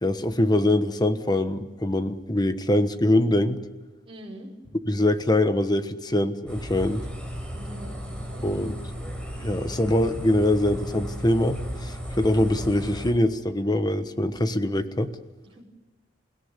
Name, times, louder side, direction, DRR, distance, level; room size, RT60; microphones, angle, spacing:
voice 1, 0.0-3.6 4.9-7.0 8.4-8.7 9.4-15.1, left 1 dB, 20° left, 10 dB, 1.3 m, -23 dB
voice 2, 4.1-4.5 7.6-8.6 15.4-15.6, right 1 dB, 30° right, -3 dB, 5.3 m, -43 dB
sound 1, 6.5-13.1, equal, 5° left, 5.5 m, -35 dB
28.5 x 17.5 x 9.8 m, 1.2 s
head